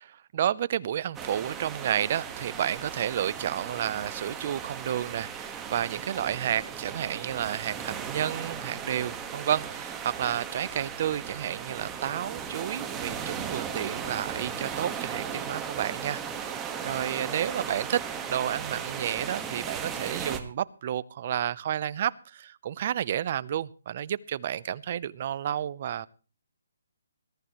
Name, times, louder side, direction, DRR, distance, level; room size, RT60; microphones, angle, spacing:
voice 1, 0.3-18.0 18.3-26.1, right 10 dB, 40° right, 0.7 m, -31 dB
sound 1, 1.1-20.4, right 7 dB, 10° right, 1.5 m, -37 dB
21.5 x 13.5 x 3.1 m
hypercardioid pair, 155°, 0 cm